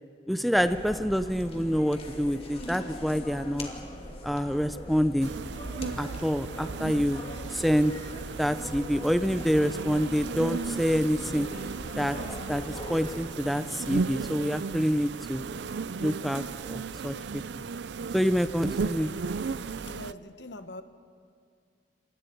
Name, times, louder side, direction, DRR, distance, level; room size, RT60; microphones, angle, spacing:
voice 1, 0.3-3.7 4.2-5.3 6.0-7.2 7.5-7.9 8.4-11.5 12.0-12.2 12.5-15.4 16.0-17.2 18.1-19.1, equal, ahead, 10 dB, 0.5 m, -27 dB
sound 1, 0.5-13.2, left 1 dB, 35° left, 2.5 m, -41 dB
sound 2, 5.2-20.1, right 5 dB, 75° right, 0.5 m, -35 dB
voice 2, 19.8-20.8, left 1 dB, 75° left, 9 dB, 1.2 m, -43 dB
28.5 x 26.5 x 4.6 m, 2.2 s
head